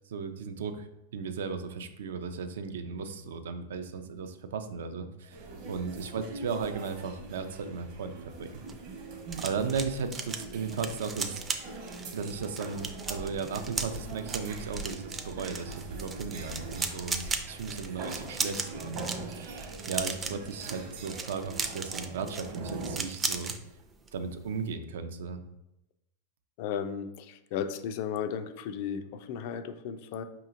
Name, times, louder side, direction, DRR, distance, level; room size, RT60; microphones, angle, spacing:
voice 1, 0.1-8.6 9.4-11.4 12.1-23.5 24.1-25.4, right 5 dB, 85° right, 8 dB, 0.4 m, -36 dB
sound 1, 5.3-23.0, right 3 dB, 55° right, 0.9 m, -42 dB
sound 2, 8.4-23.6 23.9-24.2 24.4-24.7, right 4 dB, 20° right, 0.3 m, -37 dB
voice 2, 26.6-30.2, left 8 dB, 55° left, 10 dB, 0.3 m, -35 dB
4.9 x 2.9 x 2.4 m, 0.88 s
supercardioid pair, 130°, 0 cm